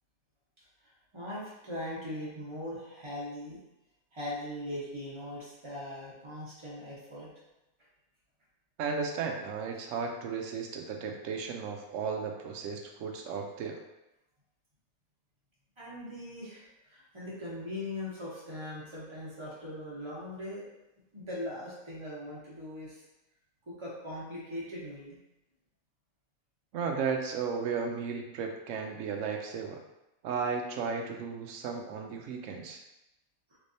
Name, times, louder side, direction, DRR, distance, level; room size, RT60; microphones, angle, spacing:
voice 1, 1.1-3.6 4.1-7.3 15.8-20.6 21.1-23.0 23.6-25.2 33.5-33.6, left 1 dB, 25° right, -7 dB, 1.0 m, -40 dB
voice 2, 8.8-13.8 26.7-29.8 30.2-32.8, right 5 dB, 70° right, 3 dB, 0.9 m, -34 dB
3.3 x 3.3 x 2.7 m, 0.92 s
omnidirectional pair, 1.5 m